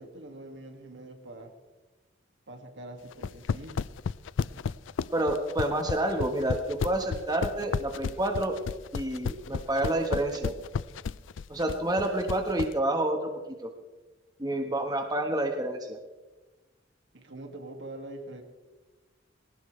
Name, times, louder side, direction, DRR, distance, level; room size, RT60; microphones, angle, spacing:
voice 1, 0.0-1.5 2.5-3.8 17.1-18.4, right 1 dB, 70° right, 4 dB, 2.2 m, -44 dB
sound 1, 3.1-12.7, left 5 dB, 75° left, 0.4 m, -32 dB
voice 2, 5.1-8.5 8.9-10.5 11.5-13.3 13.6-13.7 14.4-16.0, right 1 dB, 20° right, 3 dB, 1.4 m, -28 dB
20.0 x 18.5 x 3.3 m, 1.2 s
head